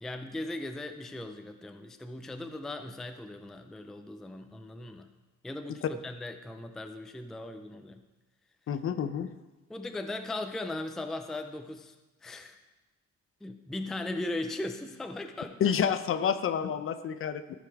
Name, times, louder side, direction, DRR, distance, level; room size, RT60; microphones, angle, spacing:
voice 1, 0.0-5.1 5.4-8.0 9.7-12.0 12.2-12.6 13.4-15.6, left 2 dB, ahead, 7 dB, 0.4 m, -38 dB
voice 2, 8.7-9.3 15.6-17.5, left 8 dB, 45° left, 12 dB, 0.5 m, -29 dB
14.5 x 5.1 x 4.7 m, 1.1 s
cardioid pair, 165°, 30 cm